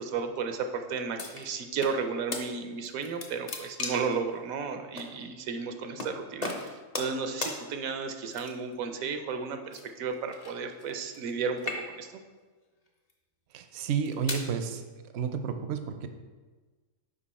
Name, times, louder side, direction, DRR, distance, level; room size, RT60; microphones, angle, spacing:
voice 1, 0.0-12.1, right 5 dB, 80° right, 7 dB, 1.0 m, -33 dB
sound 1, 1.2-1.9 2.3-2.4 2.8-4.2 5.0-5.1 6.0-6.1 6.4-7.2 7.4-7.6 8.3-8.7 9.7-11.3 11.6-12.2 12.9-13.1 13.8-14.5, left 3 dB, 40° left, 0.6 m, -36 dB
voice 2, 13.5-14.8 15.1-16.1, right 6 dB, 65° right, 8 dB, 0.7 m, -31 dB
5.3 x 5.0 x 4.1 m, 1.4 s
omnidirectional pair, 1.5 m